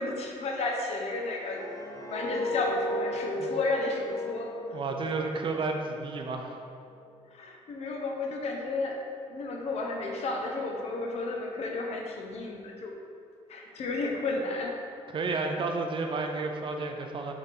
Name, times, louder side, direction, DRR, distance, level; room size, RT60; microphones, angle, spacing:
voice 1, 0.0-1.6 2.1-4.8 7.3-9.0 9.3-12.9 13.5-14.8, left 2 dB, 65° left, 1 dB, 1.0 m, -32 dB
sound 1, 1.2-6.3 6.6-6.9, left 1 dB, 30° left, 0.7 m, -36 dB
voice 2, 4.7-6.6 15.1-17.3, right 3 dB, 45° right, 3 dB, 0.6 m, -31 dB
6.3 x 4.1 x 4.2 m, 2.5 s
cardioid pair, 105°, 12 cm